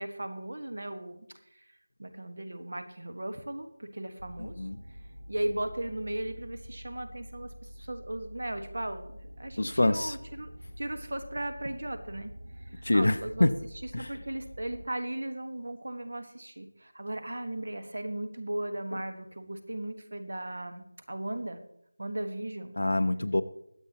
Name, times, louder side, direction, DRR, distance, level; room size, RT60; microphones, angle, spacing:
voice 1, 0.0-4.7 5.3-13.5 13.8-21.6 22.0-22.7, right 1 dB, 55° right, 9 dB, 1.4 m, -37 dB
sound 1, 4.2-14.9, equal, 90° right, 1.4 m, -47 dB
voice 2, 4.4-4.8 9.6-10.2 12.8-13.5 13.9-14.1 22.8-23.4, left 1 dB, 65° left, 13 dB, 0.7 m, -26 dB
22.0 x 8.3 x 2.9 m, 0.78 s
figure-of-eight pair, 180°, 0 cm